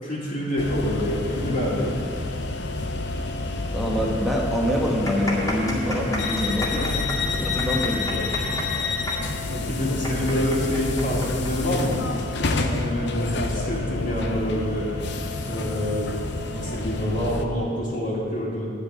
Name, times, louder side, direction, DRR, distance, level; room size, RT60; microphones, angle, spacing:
voice 1, 0.0-2.0 6.7-7.7 9.5-12.0 12.6-14.9 15.4-16.2 16.5-18.7, equal, 45° left, -10 dB, 2.2 m, -27 dB
sound 1, 0.6-17.5, left 3 dB, 60° left, 0.7 m, -28 dB
voice 2, 3.7-6.9 7.3-8.7, equal, ahead, -2 dB, 1.3 m, -26 dB
sound 2, 4.8-12.0 12.3-12.4 13.1-13.4, left 1 dB, 15° left, 2.2 m, -33 dB
11.0 x 5.1 x 8.4 m, 2.4 s
head